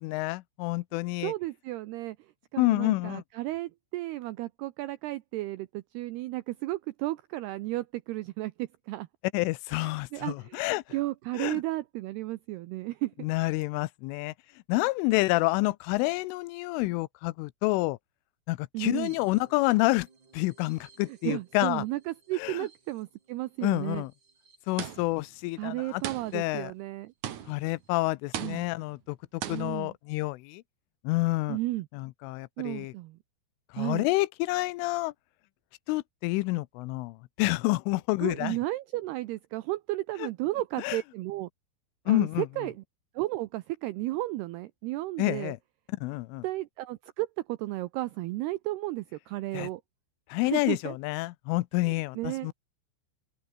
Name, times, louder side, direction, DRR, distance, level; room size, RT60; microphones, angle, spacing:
voice 1, 0.0-1.3 2.6-3.2 9.3-10.8 11.3-11.6 13.2-14.3 14.7-18.0 18.5-20.1 20.3-21.8 22.4-22.7 23.6-24.1 24.7-26.0 26.3-26.7 27.5-30.6 31.0-31.6 31.9-32.9 33.7-35.1 35.9-38.6 40.2-40.3 40.8-41.0 42.1-42.5 45.2-45.6 46.0-46.4 49.5-49.7 50.3-52.5, left 21 dB, 85° left, 3.3 m, -28 dB
voice 2, 1.2-2.2 2.5-9.1 9.7-10.6 10.9-13.3 18.7-19.1 21.2-24.0 25.6-27.1 28.4-28.6 29.5-29.9 31.5-31.9 32.6-33.2 33.8-34.1 38.2-41.5 42.1-42.8 43.2-45.5 46.4-49.8 50.4-51.0 51.9-52.5, right 18 dB, 85° right, 2.3 m, -33 dB
sound 1, 19.0-26.6 27.1-27.2 27.4-27.9, right 4 dB, 25° right, 3.3 m, -61 dB
sound 2, 24.8-25.3 26.0-26.6 27.2-27.8 28.3-28.9 29.4-29.8, right 10 dB, 60° right, 2.1 m, -38 dB
open air
omnidirectional pair, 5.5 m